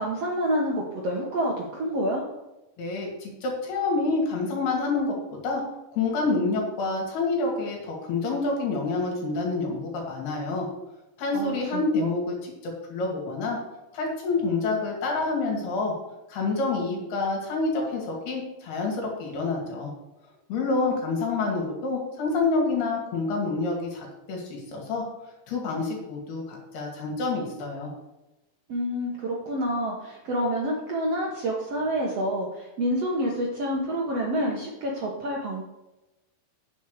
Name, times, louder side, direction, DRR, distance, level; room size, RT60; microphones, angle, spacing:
voice 1, 0.0-2.3 11.3-12.1 28.7-35.6, equal, 60° right, -2 dB, 1.8 m, -28 dB
voice 2, 2.8-5.2 5.4-5.6 5.9-10.7 11.2-13.6 13.9-15.9 16.3-19.9 20.5-25.0 25.5-27.9, left 3 dB, 75° left, -1 dB, 4.5 m, -27 dB
9.2 x 7.1 x 6.6 m, 0.99 s
omnidirectional pair, 4.6 m